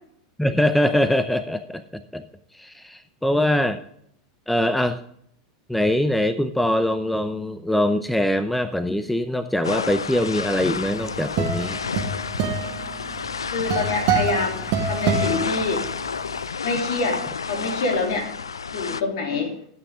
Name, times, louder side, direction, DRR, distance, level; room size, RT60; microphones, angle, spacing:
voice 1, 0.4-2.2 2.5-3.8 4.5-5.0 5.7-11.8, left 1 dB, 5° left, 10 dB, 0.8 m, -23 dB
sound 1, 9.6-19.0, left 5 dB, 85° left, 0.4 m, -30 dB
sound 2, 10.8-16.2, right 5 dB, 55° right, 1.8 m, -26 dB
voice 2, 13.5-15.9 16.6-18.3 18.7-19.5, left 3 dB, 65° left, 2 dB, 3.3 m, -26 dB
14.5 x 8.4 x 3.7 m, 0.67 s
hypercardioid pair, 90°, 2 cm